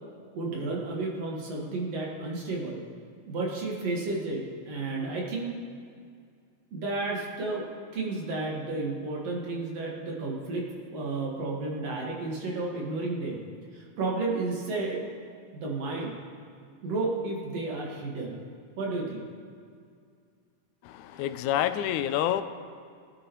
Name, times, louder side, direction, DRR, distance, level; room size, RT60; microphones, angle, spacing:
voice 1, 0.3-2.8 3.3-5.5 6.7-7.7 7.9-13.4 13.7-15.0 15.5-16.1 16.8-18.4 18.8-19.3 21.1-21.2, right 3 dB, 60° right, -2 dB, 2.8 m, -32 dB
voice 2, 20.9-22.4, left 11 dB, 85° left, 11 dB, 2.0 m, -28 dB
19.5 x 11.0 x 3.1 m, 2.3 s
omnidirectional pair, 3.4 m